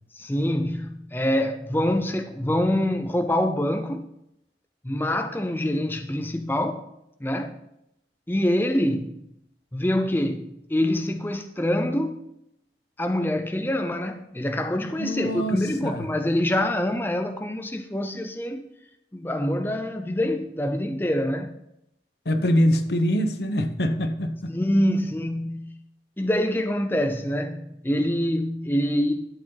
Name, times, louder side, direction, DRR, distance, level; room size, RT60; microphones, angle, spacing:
voice 1, 0.1-4.1 4.8-6.9 7.2-7.6 8.3-9.3 9.7-12.2 13.0-18.7 19.1-21.6 24.5-25.8 26.2-29.3, left 1 dB, 10° left, 0.6 m, -25 dB
voice 2, 15.0-16.1 22.2-24.5, equal, 70° left, 1.1 m, -24 dB
12.5 x 7.9 x 4.0 m
head